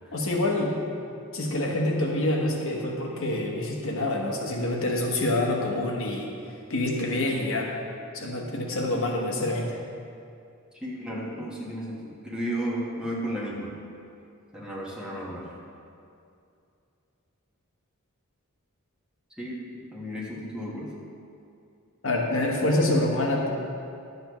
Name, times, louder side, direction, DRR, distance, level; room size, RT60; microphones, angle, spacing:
voice 1, 0.1-0.7 1.3-6.3 6.7-7.7 8.1-9.8 22.0-23.5, left 1 dB, 65° left, -1 dB, 1.2 m, -26 dB
voice 2, 10.8-13.7 14.5-15.4 19.4-20.9, equal, 5° right, -5 dB, 1.4 m, -33 dB
11.5 x 7.9 x 3.1 m, 2.5 s
head